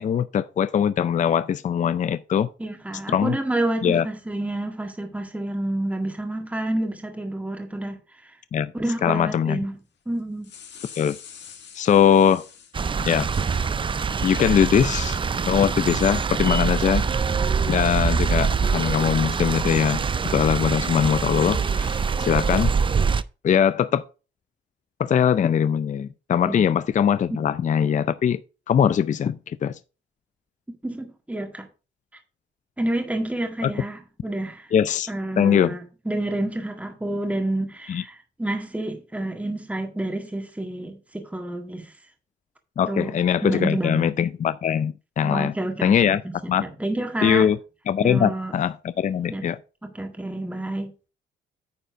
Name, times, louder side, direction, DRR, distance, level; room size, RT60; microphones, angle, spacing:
voice 1, 0.0-2.5 3.1-3.4 3.8-4.1 8.5-8.7 9.0-9.6 11.0-11.2 11.7-12.4 13.1-13.3 14.2-15.2 15.5-17.1 17.7-22.7 23.4-24.0 25.0-28.4 28.7-29.8 33.6-33.7 34.7-35.1 35.4-35.8 37.9-38.0 42.8-45.5 45.8-46.2 46.5-46.6 47.2-47.6 47.9-49.6, left 8 dB, 40° left, 0.5 m, -21 dB
voice 2, 2.6-7.9 8.2-8.3 8.7-9.7 10.0-10.5 26.4-26.7 27.3-27.4 30.8-31.7 32.8-34.7 35.1-41.9 42.9-43.2 43.4-44.1 45.2-46.2 46.6-47.5 48.0-48.6 49.3-49.4 49.8-50.9, right 1 dB, 5° right, 1.7 m, -29 dB
sound 1, 10.2-12.8 13.3-14.0, left 7 dB, 60° left, 1.7 m, -45 dB
sound 2, 12.7-23.2, right 5 dB, 25° right, 0.5 m, -24 dB
9.4 x 4.4 x 5.1 m
cardioid pair, 90°, 20 cm